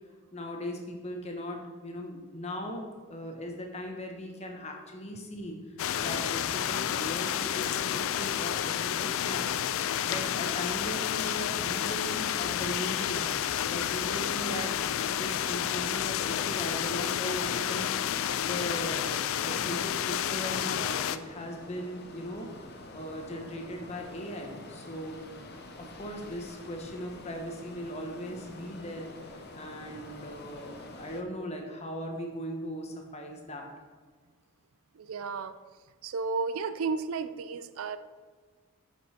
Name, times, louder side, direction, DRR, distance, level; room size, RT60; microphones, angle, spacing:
voice 1, 0.3-9.5 10.0-13.3 13.7-18.0 18.4-25.2 25.8-33.7, equal, 30° left, 2 dB, 1.1 m, -39 dB
sound 1, 5.8-21.2, left 10 dB, 65° left, 0.3 m, -30 dB
sound 2, 14.8-31.2, left 2 dB, 45° left, 0.7 m, -47 dB
voice 2, 34.9-35.6 36.0-38.0, right 4 dB, 70° right, 12 dB, 0.4 m, -33 dB
7.9 x 5.3 x 4.3 m, 1.5 s
head